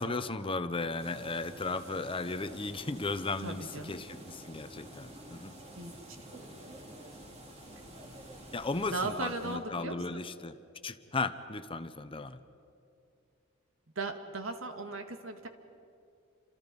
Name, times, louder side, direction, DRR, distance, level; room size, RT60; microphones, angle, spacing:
voice 1, 0.0-5.5 8.5-10.6 10.8-12.4, left 3 dB, 25° left, 11 dB, 0.9 m, -35 dB
sound 1, 1.0-9.6, right 1 dB, 35° right, 3.2 m, -49 dB
voice 2, 3.4-4.1 5.7-5.9 8.9-10.2 14.0-15.5, right 3 dB, 85° right, 6 dB, 2.1 m, -37 dB
29.5 x 27.0 x 5.4 m, 2.5 s
head